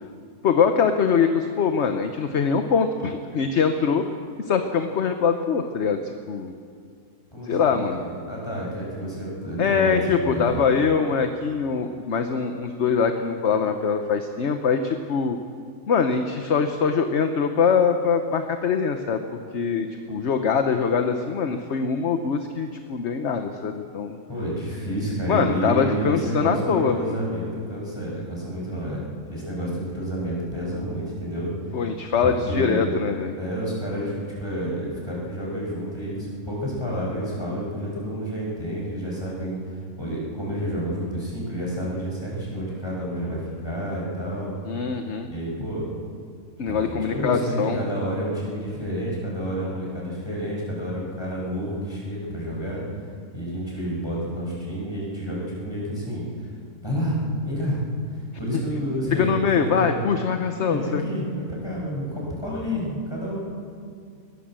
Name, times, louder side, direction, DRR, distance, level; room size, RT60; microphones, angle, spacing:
voice 1, 0.4-4.0 4.5-6.5 7.4-8.0 9.6-15.4 15.9-19.2 19.5-24.2 25.3-27.1 31.7-33.3 44.7-45.3 46.6-47.8 58.5-58.6 59.2-61.0, left 6 dB, 50° left, 7 dB, 1.1 m, -23 dB
voice 2, 7.3-10.6 24.3-29.0 29.3-31.5 32.2-32.9 33.4-44.5 45.3-45.8 46.7-52.8 53.3-56.5 56.8-57.8 58.1-59.9 60.6-63.4, equal, 15° left, -4 dB, 6.4 m, -29 dB
21.0 x 16.5 x 7.6 m, 2.3 s
omnidirectional pair, 1.7 m